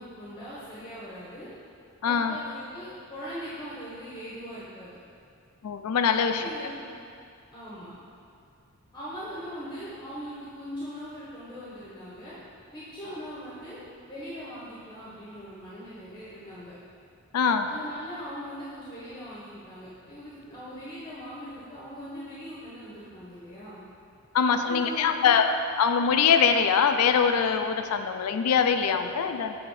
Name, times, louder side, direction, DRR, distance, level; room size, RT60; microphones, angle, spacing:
voice 1, 0.0-1.5 2.0-5.0 6.3-7.0 7.5-7.9 8.9-12.4 12.7-13.8 14.1-16.7 17.6-23.8 24.5-25.4, equal, 20° left, -8 dB, 1.0 m, -40 dB
voice 2, 2.0-2.4 5.6-6.4 17.3-17.7 24.3-29.6, left 6 dB, 90° left, 7 dB, 0.4 m, -23 dB
7.6 x 3.5 x 4.7 m, 2.4 s
head